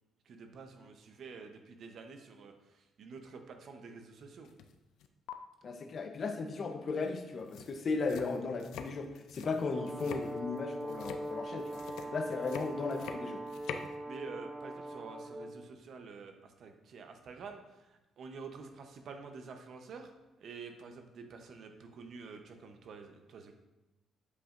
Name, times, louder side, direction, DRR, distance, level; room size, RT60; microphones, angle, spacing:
voice 1, 0.3-4.5 12.0-12.3 14.0-20.1 20.4-23.5, right 5 dB, 65° right, 5 dB, 0.8 m, -49 dB
sound 1, 4.4-4.7 5.0-5.3 7.0-7.1 7.4-13.9, left 6 dB, 85° left, 0.4 m, -46 dB
voice 2, 5.6-11.8 12.1-13.4, left 4 dB, 50° left, 6 dB, 0.8 m, -36 dB
Brass instrument, 9.6-15.6, right 1 dB, 30° right, 2.0 m, -42 dB
8.2 x 5.0 x 2.5 m, 1.0 s
cardioid pair, 90°, 0 cm